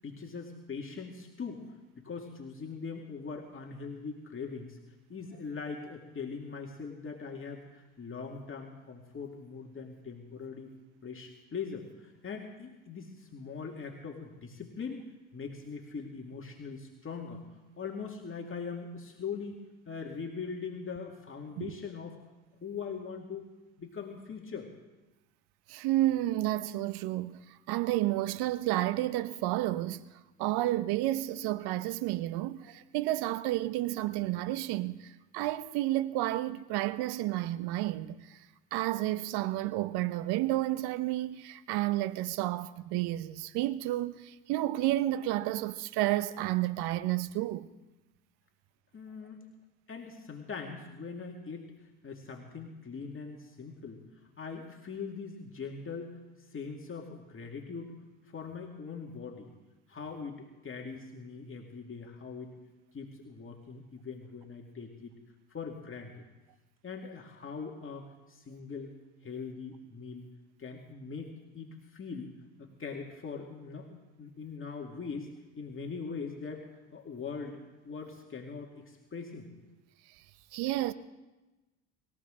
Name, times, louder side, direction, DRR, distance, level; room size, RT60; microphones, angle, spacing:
voice 1, 0.0-4.8 5.1-10.7 11.0-15.0 15.3-17.4 17.8-19.6 19.9-22.2 22.6-23.5 23.8-24.7 48.9-49.4 49.9-54.0 54.4-58.0 58.2-59.5 59.9-62.6 62.9-65.1 65.5-66.2 66.8-68.9 69.2-70.3 70.6-79.5, left 5 dB, 30° left, 2.2 m, -41 dB
voice 2, 25.7-30.0 30.4-38.4 38.7-47.7 80.5-80.9, right 15 dB, 60° right, 0.9 m, -31 dB
24.5 x 15.0 x 3.8 m
hypercardioid pair, 70°, 44 cm